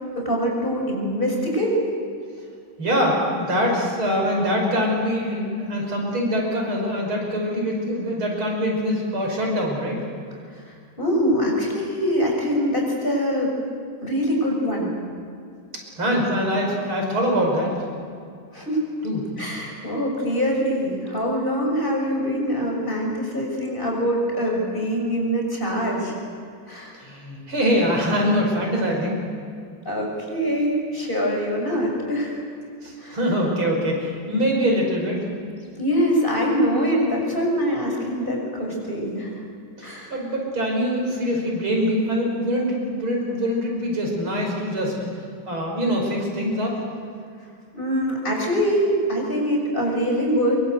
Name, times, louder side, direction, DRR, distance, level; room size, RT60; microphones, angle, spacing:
voice 1, 0.2-1.8 10.7-13.5 14.0-14.9 18.5-18.8 19.4-26.2 26.7-26.9 29.8-32.4 33.0-33.2 35.8-39.4 39.8-40.1 47.7-50.6, equal, 25° left, -1 dB, 6.6 m, -24 dB
voice 2, 2.8-10.0 16.0-17.7 19.0-19.2 27.0-29.2 32.8-35.2 39.8-45.0 45.4-46.7, equal, 90° right, 0 dB, 6.5 m, -23 dB
26.0 x 23.5 x 8.0 m, 2.3 s
omnidirectional pair, 2.2 m